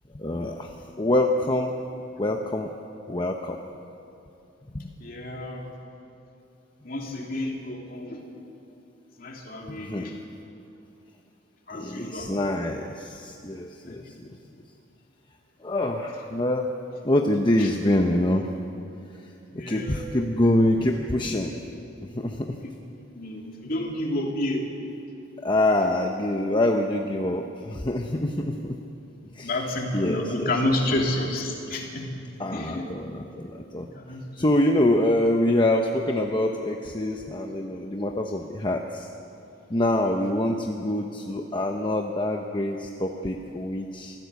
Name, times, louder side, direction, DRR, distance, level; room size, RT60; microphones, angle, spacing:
voice 1, 0.1-1.7 2.2-2.7 3.1-3.6 4.7-4.9 9.7-10.1 11.7-14.3 15.6-16.7 17.0-18.5 19.7-21.5 22.1-22.5 25.4-28.8 29.3-29.5 29.9-30.5 32.4-33.9 34.4-39.1 39.7-44.2, left 1 dB, 25° left, 2 dB, 0.9 m, -25 dB
voice 2, 5.0-5.7 6.8-8.3 9.2-10.2 11.7-12.3 13.8-14.0 17.6-17.7 19.5-20.0 22.6-22.8 23.1-24.7 29.4-32.1 32.5-32.9 33.9-34.5, left 1 dB, 45° left, 0 dB, 3.0 m, -30 dB
24.0 x 15.0 x 8.3 m, 2.8 s
head